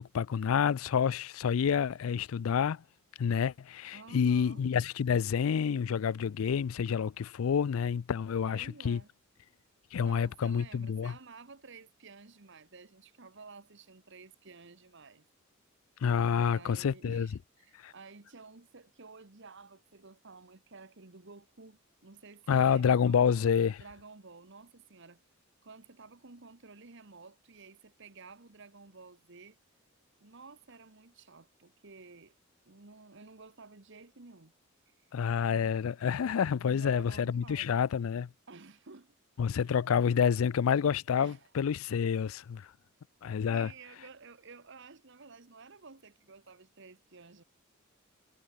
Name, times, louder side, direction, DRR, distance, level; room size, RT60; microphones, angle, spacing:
voice 1, 0.0-2.8 3.2-9.0 9.9-11.1 16.0-17.3 17.8-17.9 22.5-23.8 35.1-38.3 39.4-42.7 43.2-43.7, left 7 dB, 85° left, 0.4 m, -28 dB
voice 2, 3.9-4.6 8.4-9.1 10.0-15.3 16.2-23.4 23.8-25.2 25.6-29.6 30.2-32.3 32.6-34.5 34.9-35.0 36.6-37.9 38.5-39.7 41.2-41.5 43.5-47.4, right 4 dB, 60° right, 1.5 m, -52 dB
head